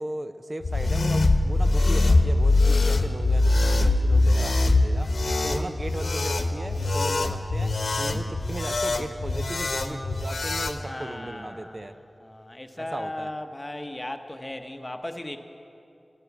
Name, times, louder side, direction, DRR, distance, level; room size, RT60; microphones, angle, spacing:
voice 1, 0.0-5.1 5.4-7.7 8.0-11.9 12.8-13.3, right 1 dB, 45° right, 9 dB, 0.6 m, -36 dB
sound 1, 0.6-10.8, left 2 dB, 65° left, 0.9 m, -23 dB
voice 2, 10.8-15.4, left 1 dB, 20° left, 7 dB, 0.9 m, -37 dB
14.0 x 10.5 x 8.2 m, 2.7 s
wide cardioid pair, 65°, 0 cm